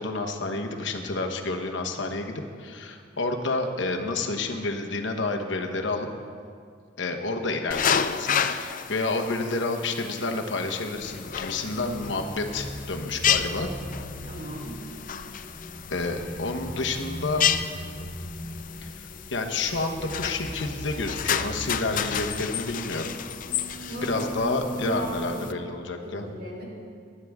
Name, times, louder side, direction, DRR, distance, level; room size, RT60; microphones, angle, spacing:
voice 1, 0.0-6.1 7.0-13.7 15.9-17.4 18.8-23.2 24.0-26.3, left 3 dB, 70° left, 3 dB, 1.1 m, -29 dB
sound 1, 7.7-25.5, left 8 dB, 45° left, 0.5 m, -31 dB
sound 2, 10.9-25.2, equal, 30° left, 2.4 m, -39 dB
voice 2, 14.2-14.8 23.9-24.5 24.8-25.4 26.0-26.6, right 2 dB, 60° right, -4 dB, 3.8 m, -37 dB
19.5 x 11.0 x 3.6 m, 2.1 s
head